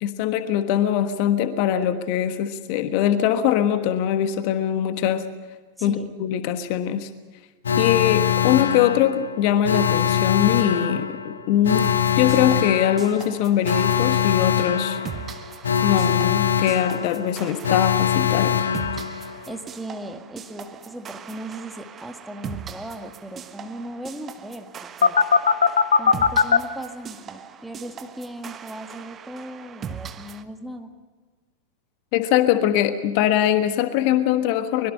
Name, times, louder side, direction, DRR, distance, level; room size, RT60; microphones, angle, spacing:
voice 1, 0.0-5.3 5.8-7.1 7.8-15.0 15.8-18.6 32.1-34.9, left 10 dB, 45° left, 10 dB, 1.4 m, -22 dB
voice 2, 5.8-6.1 18.9-25.2 26.0-30.9, right 1 dB, 5° right, 5 dB, 2.0 m, -38 dB
Alarm, 7.6-19.6 25.0-26.6, left 7 dB, 70° left, 1.2 m, -22 dB
sound 1, 11.7-30.4, right 7 dB, 25° right, 1.3 m, -40 dB
24.0 x 22.0 x 5.5 m, 1.4 s
figure-of-eight pair, 90°, 0 cm